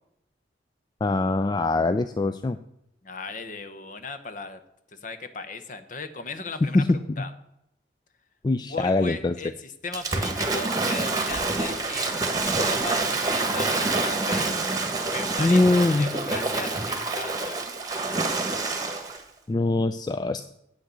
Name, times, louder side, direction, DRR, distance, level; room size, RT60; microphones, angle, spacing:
voice 1, 1.0-2.6 6.6-7.2 8.4-9.3 15.4-16.1 19.5-20.4, left 2 dB, 25° left, 11 dB, 0.3 m, -23 dB
voice 2, 3.0-4.6 4.9-7.3 8.7-14.5 15.1-17.6, left 3 dB, 45° left, 10 dB, 0.9 m, -37 dB
Waves surf / Splash splatter, 9.9-19.2, right 3 dB, 20° right, 1.4 m, -27 dB
8.3 x 6.4 x 8.1 m, 0.81 s
head